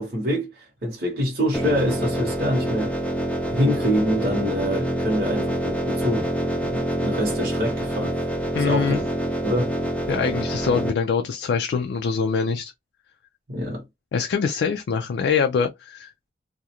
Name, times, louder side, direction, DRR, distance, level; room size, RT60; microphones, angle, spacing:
voice 1, 0.0-3.0 3.5-8.3 8.6-9.1 9.4-9.7 13.5-13.8, equal, 55° right, 0.8 m, -25 dB
sound 1, 1.5-10.9, right 1 dB, 5° left, 0.4 m, -26 dB
voice 2, 8.5-9.0 10.1-12.7 14.1-16.1, left 5 dB, 75° left, 0.3 m, -24 dB
2.3 x 2.0 x 2.8 m
head